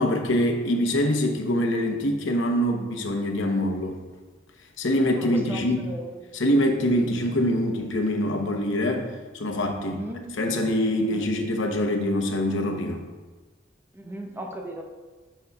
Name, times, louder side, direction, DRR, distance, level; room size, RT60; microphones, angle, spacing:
voice 1, 0.0-4.0 4.8-5.9 6.3-9.1 9.3-10.0 10.4-13.0, left 1 dB, 80° left, 4 dB, 0.8 m, -24 dB
voice 2, 5.2-6.3 9.8-10.3 10.9-11.3 11.7-11.8 13.9-14.8, right 1 dB, 10° right, 2 dB, 0.7 m, -37 dB
10.0 x 5.4 x 2.3 m, 1.3 s
head